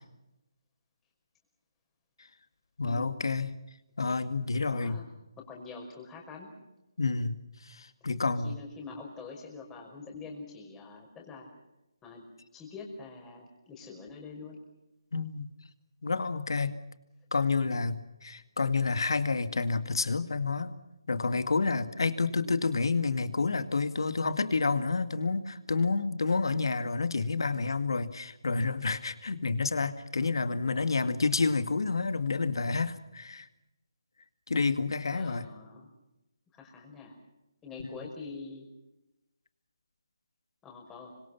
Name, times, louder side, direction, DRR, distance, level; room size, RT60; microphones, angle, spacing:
voice 1, 2.8-3.5 4.0-5.0 7.0-8.5 15.1-15.5 16.0-16.8 17.3-20.8 21.1-33.5 34.5-35.5, left 4 dB, 70° left, 11 dB, 2.1 m, -29 dB
voice 2, 4.6-5.0 5.4-6.5 8.4-11.5 12.0-12.3 12.5-14.6 22.3-22.5 35.1-35.9 36.5-37.2 37.6-38.7 40.6-41.1, left 4 dB, 10° left, 1 dB, 5.5 m, -45 dB
27.0 x 25.5 x 5.8 m, 0.94 s
figure-of-eight pair, 155°, 2 cm